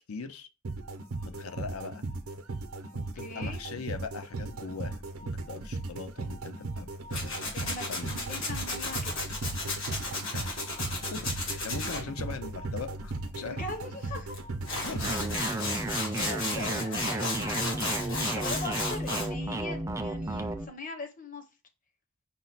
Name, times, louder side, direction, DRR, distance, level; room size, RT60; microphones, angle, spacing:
voice 1, 0.1-0.5 1.2-2.0 3.0-8.3 10.3-13.6 14.8-15.1, left 5 dB, 90° left, 0.6 m, -41 dB
sound 1, 0.6-15.9, right 2 dB, 90° right, 0.6 m, -37 dB
voice 2, 3.1-3.6 7.5-9.2 13.4-14.4 15.9-21.4, left 2 dB, 40° left, 0.8 m, -41 dB
Tools, 7.1-12.0 14.3-14.4 14.6-19.3, left 3 dB, 65° left, 1.5 m, -34 dB
sound 2, 15.0-20.7, right 2 dB, 15° right, 0.4 m, -33 dB
5.4 x 2.1 x 4.0 m
head